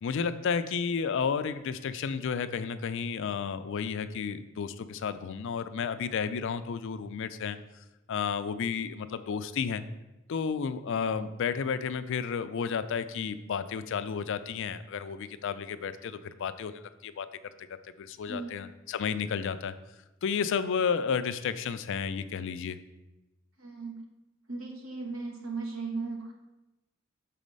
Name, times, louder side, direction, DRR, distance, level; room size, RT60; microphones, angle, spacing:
voice 1, 0.0-7.6 8.1-9.8 10.3-17.3 18.0-19.7 20.2-22.8, left 6 dB, 65° left, 11 dB, 0.4 m, -32 dB
voice 2, 18.3-18.6 23.6-24.0 24.5-26.3, right 3 dB, 70° right, 1 dB, 1.3 m, -37 dB
6.2 x 4.2 x 5.2 m, 1.0 s
head